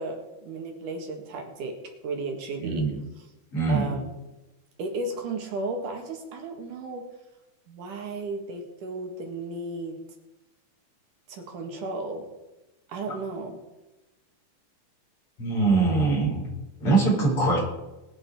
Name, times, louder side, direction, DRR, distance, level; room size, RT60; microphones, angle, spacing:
voice 1, 0.0-1.8 2.0-2.9 3.2-3.3 3.7-4.2 4.8-7.1 7.7-10.0 11.3-12.3 12.9-13.6, right 3 dB, 75° right, 3 dB, 3.4 m, -34 dB
voice 2, 2.6-3.0 3.5-3.9 15.4-16.5 16.8-17.6, right 3 dB, 45° left, -3 dB, 5.8 m, -22 dB
21.0 x 8.9 x 5.0 m, 1.0 s
omnidirectional pair, 3.7 m